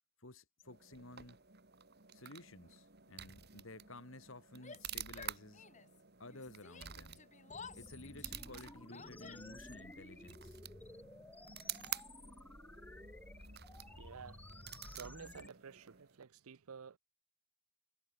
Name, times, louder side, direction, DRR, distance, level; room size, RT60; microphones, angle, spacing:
voice 1, 0.2-1.4 2.1-5.6 6.2-7.2 7.7-10.6, left 2 dB, 65° left, 2.8 m, -54 dB
sound 1, 0.6-16.2, right 10 dB, 45° right, 2.7 m, -50 dB
Yell, 4.5-6.0 6.3-9.7, left 5 dB, 35° left, 1.8 m, -54 dB
sound 2, 7.5-15.5, left 1 dB, 10° left, 0.3 m, -54 dB
voice 2, 14.0-14.4 14.9-17.0, right 6 dB, 80° right, 0.6 m, -51 dB
head